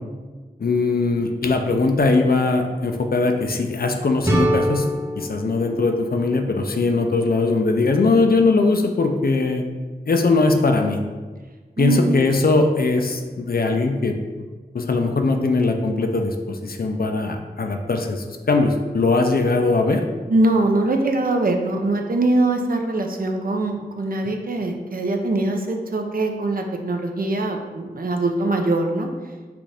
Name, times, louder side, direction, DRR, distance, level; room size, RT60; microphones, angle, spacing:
voice 1, 0.6-4.9 5.2-9.6 10.1-11.0 11.8-14.1 14.7-20.0, left 3 dB, 65° left, 4 dB, 0.5 m, -20 dB
sound 1, 4.2-7.1, equal, 15° right, 0.7 m, -25 dB
voice 2, 20.3-29.1, right 2 dB, 60° right, 3 dB, 0.5 m, -22 dB
5.8 x 2.5 x 3.4 m, 1.4 s
wide cardioid pair, 60°, 17 cm